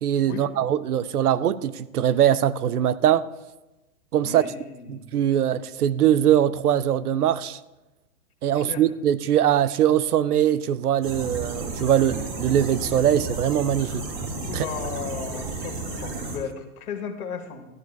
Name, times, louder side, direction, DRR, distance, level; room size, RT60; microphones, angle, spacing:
voice 1, 0.0-3.2 4.1-4.5 4.9-7.6 8.4-14.0 14.5-14.7, right 10 dB, 80° right, 0.7 m, -22 dB
voice 2, 4.2-5.0 8.7-8.8 14.4-17.7, left 6 dB, 80° left, 1.8 m, -35 dB
sound 1, 11.0-16.4, right 3 dB, 45° right, 3.0 m, -33 dB
13.5 x 13.0 x 2.3 m
hypercardioid pair, 125°, 44 cm